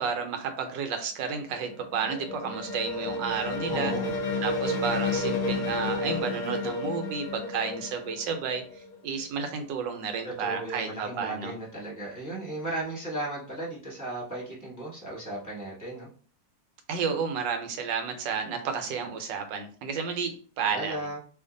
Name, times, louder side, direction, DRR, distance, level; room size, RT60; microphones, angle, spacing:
voice 1, 0.0-3.9 4.4-11.5 16.9-21.1, right 6 dB, 75° right, 6 dB, 1.3 m, -32 dB
sound 1, 1.5-9.1, left 2 dB, 60° left, 0.8 m, -31 dB
voice 2, 3.7-4.1 10.2-16.1 20.7-21.2, right 1 dB, 15° left, -5 dB, 0.9 m, -35 dB
2.8 x 2.5 x 3.7 m, 0.42 s
omnidirectional pair, 2.1 m